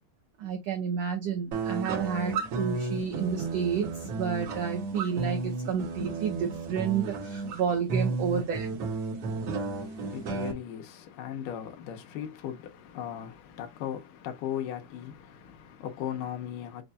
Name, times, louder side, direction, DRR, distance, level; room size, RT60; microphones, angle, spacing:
voice 1, 0.4-8.8, right 7 dB, 80° right, 1.4 m, -31 dB
sound 1, 1.5-10.5, right 3 dB, 60° right, 1.7 m, -33 dB
voice 2, 9.7-16.8, left 10 dB, 80° left, 2.4 m, -38 dB
6.0 x 2.6 x 2.2 m
omnidirectional pair, 3.8 m